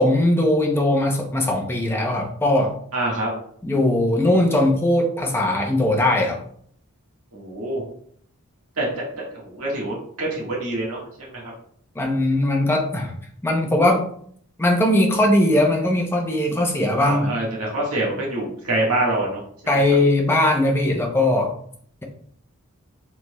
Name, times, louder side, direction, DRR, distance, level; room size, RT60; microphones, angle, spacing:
voice 1, 0.0-2.7 3.6-6.4 12.0-13.1 13.4-14.1 14.6-17.3 19.7-21.5, left 1 dB, 10° left, 0 dB, 0.6 m, -19 dB
voice 2, 2.9-3.4 7.3-7.8 8.8-9.1 9.3-11.5 17.0-19.4, right 2 dB, 80° right, -4 dB, 1.6 m, -25 dB
4.7 x 4.3 x 2.2 m, 0.62 s
head